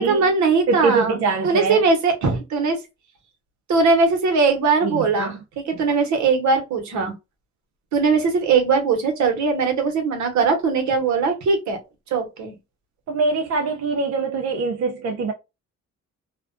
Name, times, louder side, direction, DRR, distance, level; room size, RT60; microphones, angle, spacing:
voice 1, 0.0-1.2 1.4-2.8 3.7-7.1 7.9-11.8 12.1-12.5, right 4 dB, 70° right, 1.0 m, -20 dB
voice 2, 0.7-1.8 4.8-5.4 13.1-15.3, right 4 dB, 55° right, 0.5 m, -23 dB
2.4 x 2.2 x 2.4 m
cardioid pair, 90°, 30 cm